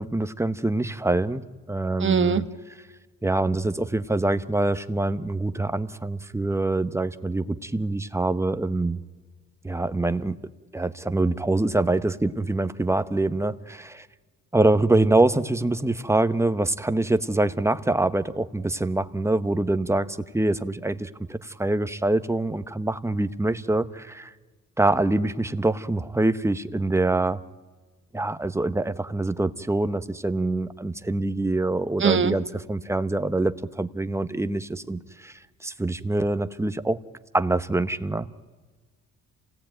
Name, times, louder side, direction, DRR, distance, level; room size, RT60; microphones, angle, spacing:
voice 1, 0.0-2.5 3.2-9.0 9.6-10.4 10.7-14.1 14.5-24.3 24.8-27.4 28.1-37.0 37.3-38.3, right 2 dB, 10° right, 11 dB, 1.1 m, -25 dB
voice 2, 2.0-2.4 32.0-32.3, right 6 dB, 40° right, 10 dB, 1.4 m, -21 dB
27.5 x 18.0 x 9.2 m, 1.3 s
cardioid pair, 90°, 30 cm